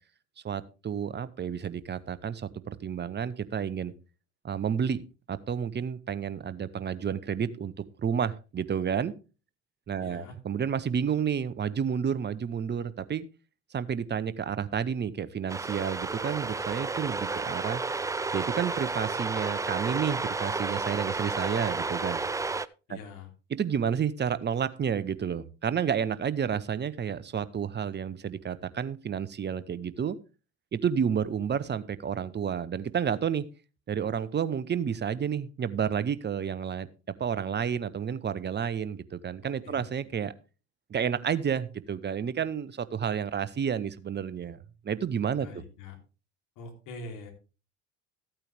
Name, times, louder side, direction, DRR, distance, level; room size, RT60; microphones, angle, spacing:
voice 1, 0.4-3.9 4.4-5.0 5.3-9.1 9.9-13.3 13.7-17.8 18.3-22.2 22.9-23.0 23.5-30.2 30.7-33.5 33.9-36.9 37.2-40.3 40.9-44.6 44.8-45.5, right 7 dB, 30° right, 15 dB, 1.0 m, -30 dB
voice 2, 10.0-10.3 22.9-23.3 39.6-39.9 45.4-46.0 46.6-47.3, left 3 dB, 60° left, 3 dB, 3.5 m, -43 dB
sound 1, 15.5-22.7, right 3 dB, 10° right, 0.4 m, -32 dB
14.0 x 8.9 x 3.4 m, 0.33 s
hypercardioid pair, 65°, 36 cm